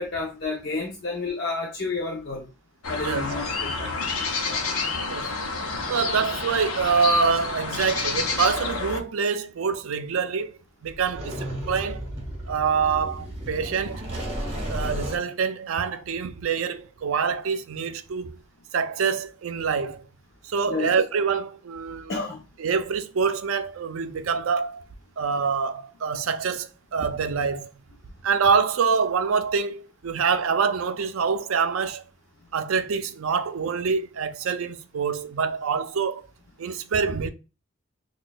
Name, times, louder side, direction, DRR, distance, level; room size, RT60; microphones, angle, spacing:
voice 1, 0.0-2.5 2.9-4.2 4.4-4.6 20.7-20.9 22.1-22.4, left 3 dB, 50° left, 0.7 m, -31 dB
sound 1, 2.8-9.0, left 4 dB, 90° left, 0.8 m, -29 dB
voice 2, 5.9-12.1 12.5-14.1 14.7-18.4 18.7-20.1 20.4-22.2 22.6-24.8 25.2-27.7 28.2-32.0 32.5-36.3 36.6-37.3, right 5 dB, 80° right, 0.4 m, -25 dB
sound 2, 10.9-15.2, right 1 dB, 25° right, 1.0 m, -33 dB
5.9 x 2.3 x 2.2 m
head